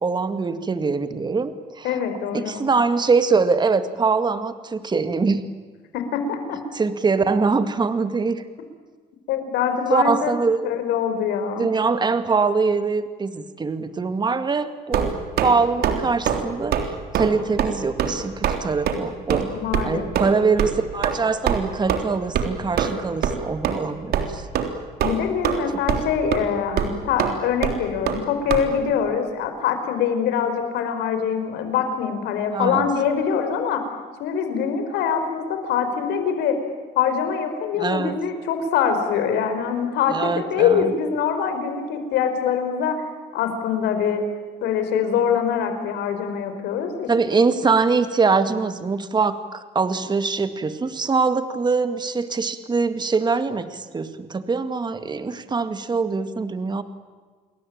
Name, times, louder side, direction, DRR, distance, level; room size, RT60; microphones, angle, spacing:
voice 1, 0.0-1.9 2.3-5.5 6.7-8.4 9.9-10.7 11.6-16.8 17.1-19.5 19.8-24.5 32.5-32.9 37.8-38.2 40.1-40.9 47.1-56.8, right 4 dB, 25° right, 10 dB, 2.0 m, -23 dB
voice 2, 1.8-2.6 5.9-6.6 9.3-10.3 10.6-11.7 19.5-20.3 25.0-33.9 34.2-36.6 36.9-43.0 43.3-44.2 44.6-47.1, left 7 dB, 85° left, 7 dB, 4.9 m, -24 dB
sound 1, 14.9-15.5 15.8-16.0 16.2-16.4 16.7-16.9 17.1-17.3 17.6-17.7 18.0-18.1 18.4-18.6 18.9-19.0 19.3-19.4 19.7-19.8 20.1-20.3 20.6-20.7 21.0-21.1 21.5-21.6 21.9-22.0 22.3-22.5 22.8-22.9 23.2-23.4 23.6-23.7 24.1-24.3 24.5-24.7 25.0-25.6 25.9-26.1 26.3-26.4 26.8-26.9 27.2-27.3 27.6-27.7 28.1-28.2 28.5-28.6, right 9 dB, 65° right, 3.5 m, -22 dB
29.0 x 22.0 x 8.9 m, 1.4 s
cardioid pair, 110°, 17 cm